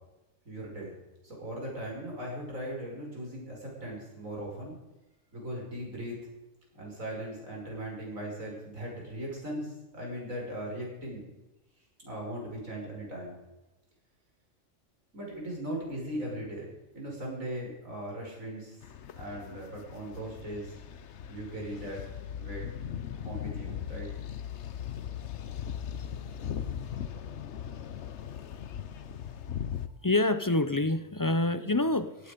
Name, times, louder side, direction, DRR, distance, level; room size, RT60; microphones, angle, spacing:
voice 1, 0.5-1.0 1.2-4.8 5.3-6.2 6.7-11.3 12.0-13.4 15.1-16.7 16.9-18.8 19.1-20.7 21.3-22.0 22.4-22.7 23.1-24.1 29.4-29.6, right 1 dB, 90° right, -2 dB, 6.1 m, -38 dB
sound 1, 18.8-29.9, left 9 dB, 60° left, 1.1 m, -39 dB
voice 2, 30.0-32.3, left 2 dB, 25° left, 12 dB, 0.5 m, -27 dB
17.5 x 14.0 x 5.2 m, 1.0 s
omnidirectional pair, 1.4 m